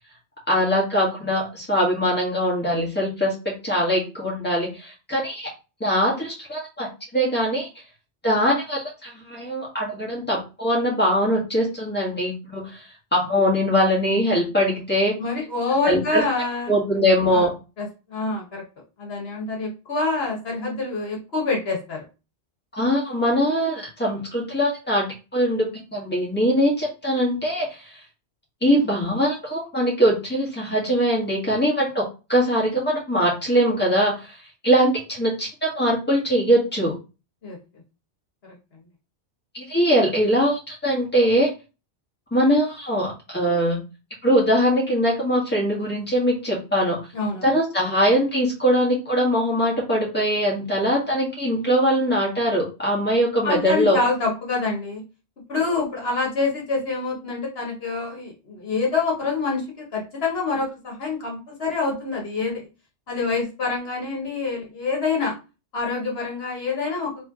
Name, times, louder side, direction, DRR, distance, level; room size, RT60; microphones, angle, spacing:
voice 1, 0.5-5.5 5.8-6.9 7.1-7.7 8.2-12.8 13.1-15.1 15.8-16.2 16.7-17.5 22.7-25.7 25.9-27.8 28.6-32.0 32.3-34.3 34.6-36.9 39.5-41.5 42.3-43.8 44.2-47.0 47.4-54.0, equal, 10° left, -4 dB, 1.4 m, -22 dB
voice 2, 15.2-16.8 17.3-17.5 17.8-18.6 19.0-22.0 37.4-37.6 38.4-38.5 47.1-47.5 53.4-55.0 55.5-62.6 63.1-65.3 65.7-67.2, left 3 dB, 65° left, -2 dB, 1.3 m, -26 dB
3.1 x 3.0 x 3.7 m, 0.31 s
omnidirectional pair, 1.1 m